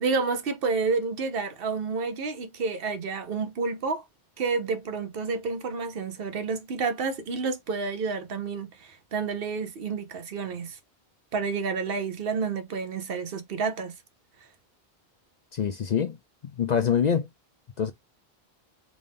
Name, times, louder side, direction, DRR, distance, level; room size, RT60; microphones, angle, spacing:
voice 1, 0.0-4.0 4.4-10.8 11.3-13.9, right 4 dB, 65° right, 0.9 m, -29 dB
voice 2, 15.5-16.2 16.6-17.3 17.8-17.9, left 7 dB, 55° left, 0.5 m, -24 dB
3.7 x 2.6 x 3.4 m
omnidirectional pair, 1.0 m